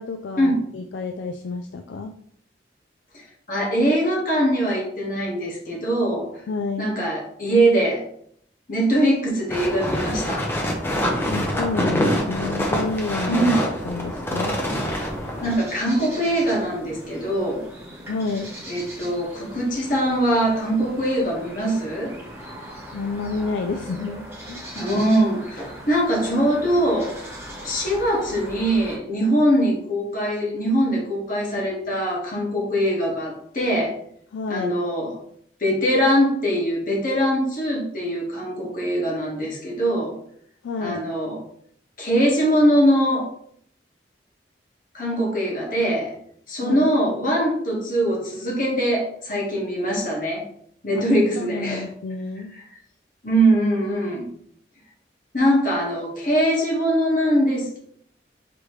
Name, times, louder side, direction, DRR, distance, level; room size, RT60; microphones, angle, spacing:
voice 1, 0.0-2.1 6.5-7.0 11.3-13.5 13.8-14.6 18.1-18.5 22.9-24.7 34.3-34.7 40.6-41.0 46.6-46.9 50.9-52.5, left 3 dB, 80° left, 5 dB, 0.3 m, -29 dB
voice 2, 3.1-6.3 6.8-8.0 8.7-10.5 13.3-13.6 15.4-17.7 18.7-22.1 24.7-27.2 27.6-33.9 34.5-35.2 35.6-40.2 40.8-41.4 42.0-43.3 44.9-46.1 46.5-50.4 50.8-51.9 53.2-54.3 55.3-57.8, right 1 dB, 45° left, -3 dB, 1.5 m, -22 dB
sound 1, 9.5-15.5, equal, 15° left, 0.7 m, -25 dB
sound 2, 14.4-29.0, equal, 15° right, 1.1 m, -40 dB
5.1 x 3.2 x 3.1 m, 0.66 s
head